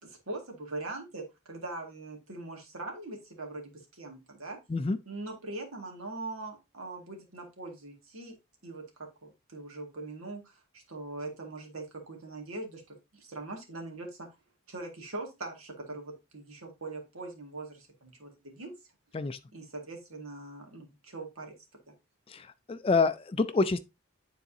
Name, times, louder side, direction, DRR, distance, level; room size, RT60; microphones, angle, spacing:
voice 1, 0.0-4.6 5.1-8.3 8.6-8.8 9.2-14.3 14.7-18.7 19.5-21.5 21.9-22.0, right 2 dB, 80° right, 1.9 m, -42 dB
voice 2, 22.3-23.8, left 3 dB, 25° left, 0.3 m, -27 dB
9.8 x 4.0 x 2.7 m
head